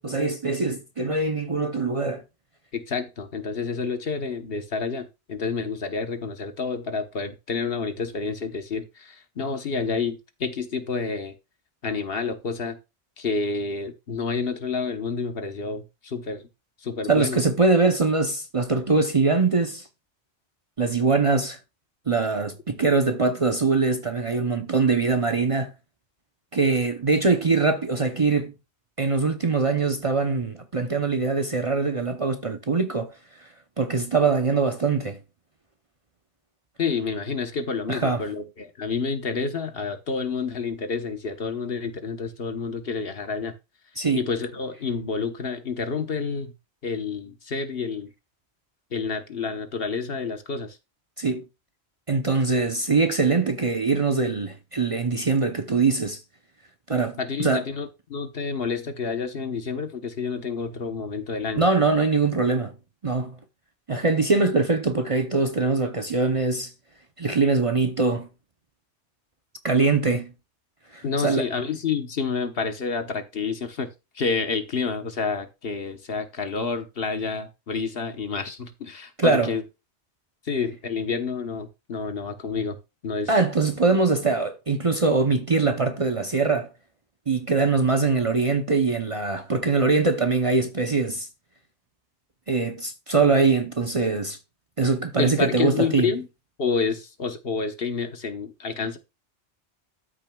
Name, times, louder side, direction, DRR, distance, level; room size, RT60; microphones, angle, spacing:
voice 1, 0.0-2.2 17.1-19.8 20.8-21.6 22.1-25.7 26.5-28.5 29.0-33.1 33.8-35.2 37.9-38.2 44.0-44.2 51.2-51.4 52.1-56.2 56.9-57.6 61.6-62.7 63.0-63.4 63.9-66.7 67.2-68.3 69.6-70.3 70.9-71.5 79.2-79.5 83.3-86.7 87.3-91.3 92.5-94.4 94.8-96.1, right 4 dB, 35° right, 0.7 m, -22 dB
voice 2, 2.7-11.3 11.8-12.8 13.2-16.5 16.8-17.4 36.8-43.5 44.2-46.5 46.8-48.1 48.9-50.8 57.2-61.6 71.0-79.6 80.4-82.8 83.0-83.3 95.2-96.3 96.6-99.0, left 5 dB, 60° left, 1.3 m, -29 dB
13.0 x 6.2 x 2.3 m
omnidirectional pair, 1.2 m